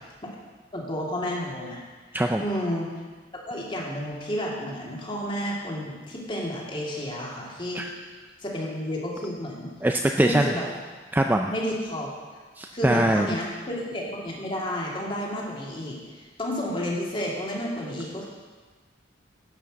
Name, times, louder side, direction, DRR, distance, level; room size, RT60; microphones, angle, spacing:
voice 1, 0.7-1.8 2.4-2.9 3.5-7.8 8.4-9.7 10.2-10.7 11.5-12.1 12.7-18.3, equal, 25° left, -3 dB, 2.3 m, -31 dB
voice 2, 9.8-10.5 11.1-11.5 12.6-13.3, right 1 dB, 10° right, 4 dB, 0.4 m, -22 dB
11.0 x 6.0 x 7.6 m, 1.4 s
head